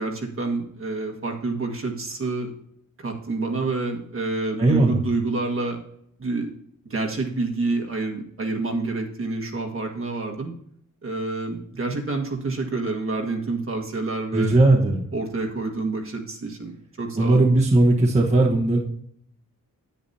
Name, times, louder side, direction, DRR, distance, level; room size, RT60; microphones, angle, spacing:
voice 1, 0.0-2.5 3.0-5.8 6.2-6.5 6.8-10.5 11.0-14.5 15.1-17.4, right 3 dB, 45° right, 1 dB, 1.7 m, -28 dB
voice 2, 4.6-5.0 14.3-15.1 17.1-18.8, right 2 dB, 20° right, -3 dB, 1.2 m, -18 dB
10.0 x 9.8 x 2.8 m, 0.69 s
wide cardioid pair, 170°, 31 cm